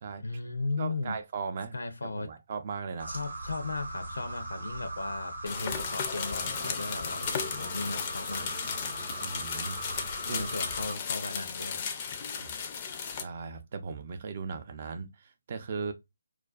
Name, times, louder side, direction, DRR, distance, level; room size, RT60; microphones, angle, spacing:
voice 1, 0.2-1.2 1.7-2.3 3.1-8.5 10.2-11.8, left 3 dB, 85° left, 0.6 m, -36 dB
voice 2, 0.8-1.7 2.0-3.1 9.2-10.5 12.3-12.6 13.1-15.9, right 5 dB, 45° right, 0.4 m, -38 dB
sound 1, 3.0-10.9, right 2 dB, 90° right, 0.7 m, -40 dB
sound 2, 5.5-13.2, left 6 dB, 30° left, 0.4 m, -35 dB
2.4 x 2.2 x 2.3 m
figure-of-eight pair, 155°, 0 cm